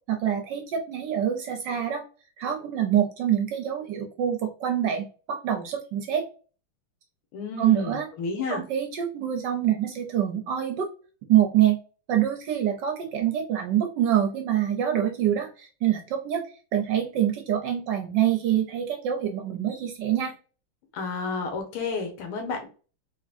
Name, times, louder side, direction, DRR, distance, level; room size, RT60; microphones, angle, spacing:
voice 1, 0.1-2.0 2.4-6.2 7.6-8.1 8.5-10.9 11.3-11.8 12.1-16.4 16.7-20.3, right 10 dB, 70° right, 4 dB, 1.2 m, -25 dB
voice 2, 7.3-8.6 20.9-22.7, left 4 dB, 80° left, 4 dB, 1.9 m, -31 dB
3.7 x 3.5 x 2.5 m, 0.36 s
omnidirectional pair, 2.3 m